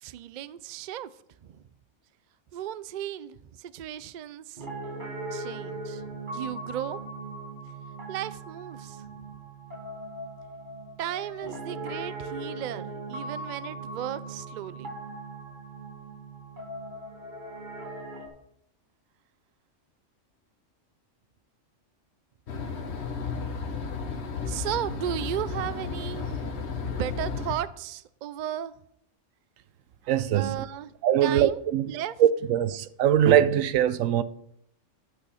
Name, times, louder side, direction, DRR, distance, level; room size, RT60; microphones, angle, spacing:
voice 1, 0.0-1.1 1.4-1.6 2.5-4.7 5.3-6.1 6.3-7.0 8.1-9.1 11.0-15.0 24.5-26.5 26.8-28.7 30.3-30.9 31.2-31.6 31.9-32.1, right 11 dB, 60° right, 0.4 m, -35 dB
Piano, 4.6-18.3, right 2 dB, 40° right, 2.1 m, -39 dB
sound 1, 22.5-27.5, left 5 dB, 60° left, 1.3 m, -33 dB
voice 2, 30.1-30.6 31.0-31.9 32.2-34.2, right 10 dB, 90° right, 1.0 m, -22 dB
11.0 x 6.2 x 5.6 m
omnidirectional pair, 1.3 m